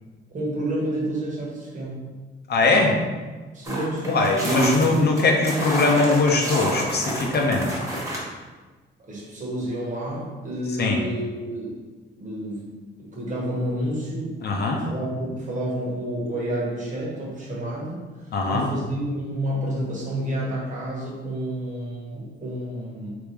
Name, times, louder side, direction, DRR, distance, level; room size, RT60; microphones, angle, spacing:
voice 1, 0.3-2.0 3.5-5.0 9.0-11.7 12.2-12.7 13.0-14.4 14.8-23.2, right 1 dB, 40° right, -5 dB, 1.4 m, -29 dB
voice 2, 2.5-2.9 4.1-7.7 10.8-11.0 14.4-14.8 18.3-18.7, left 3 dB, 55° left, 1 dB, 0.7 m, -21 dB
sound 1, 3.6-8.2, right 1 dB, 15° right, 1.4 m, -29 dB
3.4 x 2.9 x 3.3 m, 1.3 s
cardioid pair, 90°, 20 cm